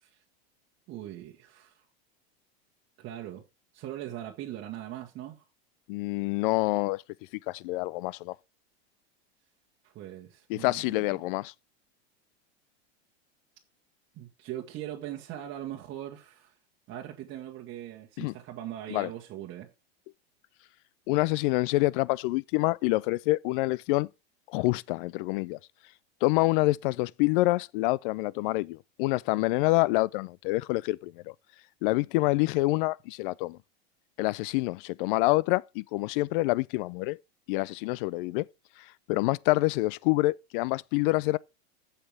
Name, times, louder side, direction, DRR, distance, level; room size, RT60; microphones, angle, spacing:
voice 1, 0.9-1.8 3.0-3.4 3.7-5.4 9.8-11.0 14.2-16.5 16.9-19.7, right 12 dB, 40° right, 1.6 m, -40 dB
voice 2, 5.9-7.0 7.5-8.4 10.5-11.5 18.2-18.3 18.9-19.1 21.1-24.1 24.5-25.6 26.2-31.3 31.8-33.6 34.2-37.2 37.5-38.4 39.1-41.4, left 21 dB, 55° left, 0.4 m, -27 dB
15.0 x 5.7 x 3.5 m
supercardioid pair, 120°, 32 cm